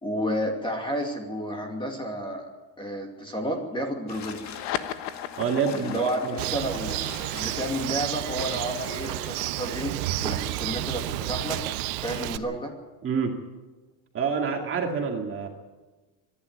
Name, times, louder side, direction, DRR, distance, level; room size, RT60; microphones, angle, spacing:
voice 1, 0.0-2.4 2.8-4.4 5.7-7.0 7.3-11.6 12.0-12.7, equal, 10° left, 3 dB, 2.5 m, -31 dB
sound 1, 4.1-9.3, left 7 dB, 35° left, 1.8 m, -44 dB
sound 2, 4.4-11.3, left 11 dB, 80° left, 1.5 m, -38 dB
voice 2, 5.4-6.4 13.0-13.4 14.1-15.5, right 6 dB, 25° right, 2 dB, 2.3 m, -27 dB
Bird, 6.4-12.4, right 15 dB, 80° right, 1.1 m, -31 dB
24.5 x 11.5 x 9.5 m, 1.2 s
cardioid pair, 165°, 46 cm